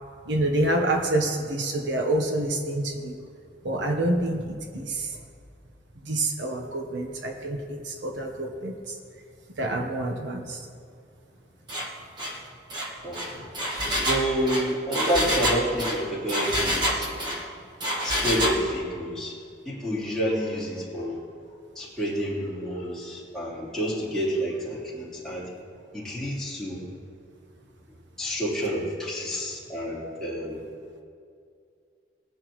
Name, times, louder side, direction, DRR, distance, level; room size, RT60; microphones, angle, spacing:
voice 1, 0.3-3.2 3.6-5.1 6.0-8.9 9.6-10.6, right 1 dB, 80° right, 3 dB, 1.1 m, -27 dB
Engine, 11.7-11.9 12.2-12.4 12.7-17.4 17.8-18.6, equal, 25° right, 1.5 m, -27 dB
voice 2, 13.0-13.6 14.0-17.1 18.0-19.3 19.7-21.2 21.8-25.5 25.9-26.9 28.2-30.6, equal, 5° left, -9 dB, 3.5 m, -29 dB
20.0 x 10.5 x 3.1 m, 2.3 s
head